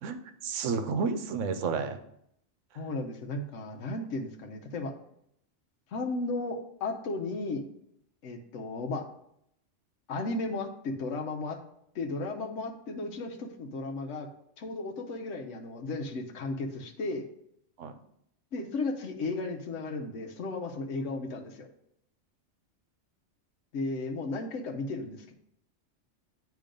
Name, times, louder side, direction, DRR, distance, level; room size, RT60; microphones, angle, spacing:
voice 1, 0.0-2.0 17.8-17.9, right 5 dB, 85° right, 9 dB, 1.0 m, -31 dB
voice 2, 2.7-4.9 5.9-7.6 8.2-9.0 10.1-11.6 11.9-14.3 14.6-17.2 18.5-21.7 23.7-25.3, left 3 dB, 85° left, 2 dB, 1.1 m, -34 dB
8.9 x 3.1 x 5.1 m, 0.73 s
omnidirectional pair, 1.2 m